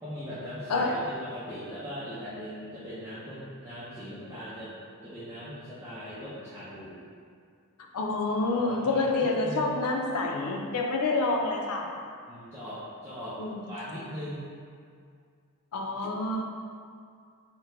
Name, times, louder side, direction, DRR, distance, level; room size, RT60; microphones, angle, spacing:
voice 1, 0.0-4.7 5.0-7.0 8.4-9.8 12.3-13.4 13.7-14.5, equal, 10° right, -13 dB, 0.6 m, -40 dB
voice 2, 7.9-11.9 13.4-13.6 15.7-16.4, left 3 dB, 85° left, 1 dB, 0.5 m, -27 dB
3.6 x 2.1 x 4.2 m, 2.2 s
head